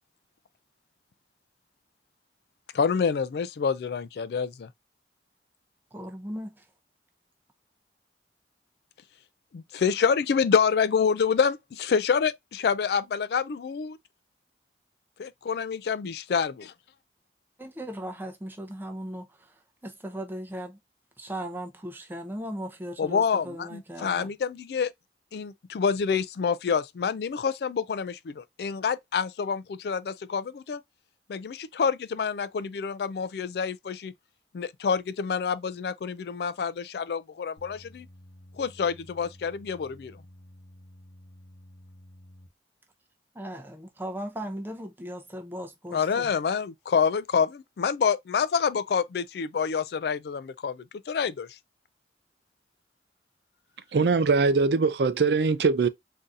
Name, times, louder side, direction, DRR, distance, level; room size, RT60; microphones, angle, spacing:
voice 1, 2.7-4.7 9.5-14.0 15.2-16.7 23.0-24.9 25.3-30.8 31.3-34.1 34.5-38.1 38.6-40.2 45.9-51.5, left 6 dB, 65° left, 0.3 m, -27 dB
voice 2, 5.9-6.7 17.6-20.8 21.2-24.4 43.3-46.3, equal, 10° right, 0.6 m, -38 dB
sound 1, 37.6-42.5, left 1 dB, 80° left, 0.8 m, -52 dB
voice 3, 53.9-55.9, right 4 dB, 70° right, 0.4 m, -22 dB
3.8 x 2.7 x 2.4 m
head